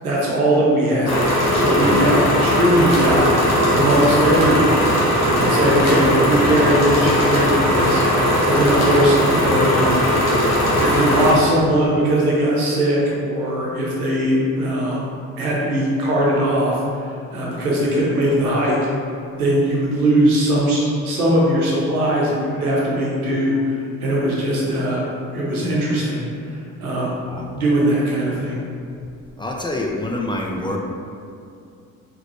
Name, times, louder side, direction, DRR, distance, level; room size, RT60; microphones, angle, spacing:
voice 1, 0.0-1.2 1.5-4.9 5.4-10.0 10.8-15.1 15.4-16.8 17.3-18.8 19.4-25.0 25.3-26.2 26.8-27.2 27.5-28.6, right 1 dB, 90° right, -4 dB, 0.7 m, -20 dB
sound 1, 1.1-11.3, equal, 35° left, 1.3 m, -18 dB
voice 2, 1.7-2.1 27.2-27.5 29.4-30.8, left 1 dB, 10° left, -1 dB, 0.5 m, -26 dB
4.0 x 3.1 x 3.0 m, 2.4 s
figure-of-eight pair, 45°, 43 cm